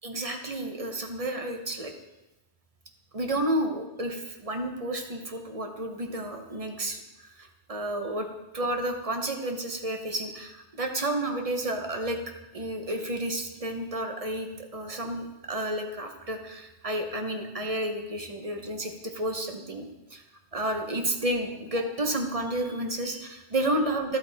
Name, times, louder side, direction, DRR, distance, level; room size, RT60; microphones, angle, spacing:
voice 1, 0.0-1.9 3.1-8.3 8.5-12.2 12.5-19.8 20.1-20.2 20.5-24.2, right 1 dB, 35° right, 4 dB, 1.0 m, -31 dB
12.0 x 8.4 x 3.5 m, 0.97 s
omnidirectional pair, 1.1 m